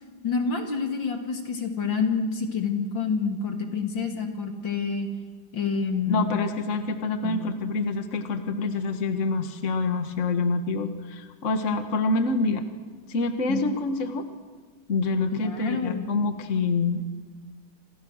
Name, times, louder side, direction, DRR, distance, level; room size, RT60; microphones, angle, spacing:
voice 1, 0.2-5.1 5.5-6.3 7.2-7.4 13.5-13.8 15.3-16.1, left 5 dB, 75° left, 4 dB, 3.2 m, -28 dB
voice 2, 6.1-12.6 13.1-14.2 14.9-17.0, left 3 dB, 40° left, 7 dB, 1.8 m, -26 dB
28.5 x 27.0 x 6.5 m, 1.4 s
omnidirectional pair, 2.1 m